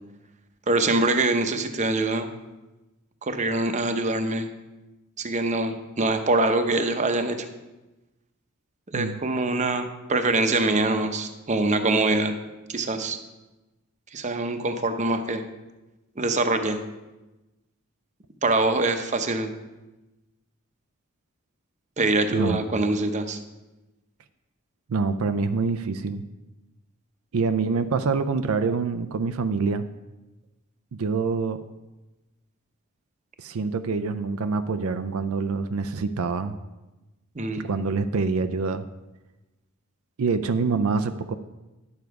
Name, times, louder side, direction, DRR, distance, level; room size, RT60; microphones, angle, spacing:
voice 1, 0.7-2.3 3.2-4.5 5.2-7.5 8.9-12.3 12.7-13.2 14.1-15.4 16.2-16.8 18.4-19.5 22.0-23.4 37.3-37.7, right 2 dB, 35° right, 7 dB, 0.7 m, -24 dB
voice 2, 24.9-26.2 27.3-29.8 30.9-31.6 33.4-36.6 37.5-38.9 40.2-41.4, right 4 dB, 75° right, 10 dB, 0.5 m, -26 dB
10.5 x 7.2 x 4.7 m, 1.1 s
head